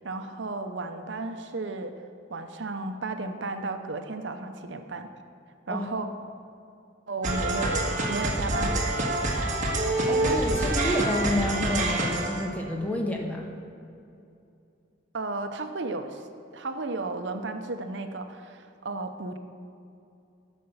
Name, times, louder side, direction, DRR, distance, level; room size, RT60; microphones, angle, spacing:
voice 1, 0.0-1.9 2.3-5.1 5.7-6.1 7.1-9.1 15.1-16.2 16.5-19.4, right 3 dB, 65° right, 7 dB, 0.7 m, -33 dB
sound 1, 7.2-12.4, right 2 dB, 40° right, 1.7 m, -26 dB
voice 2, 10.1-13.5, left 1 dB, 10° left, 0 dB, 1.4 m, -29 dB
13.0 x 6.7 x 7.0 m, 2.6 s
head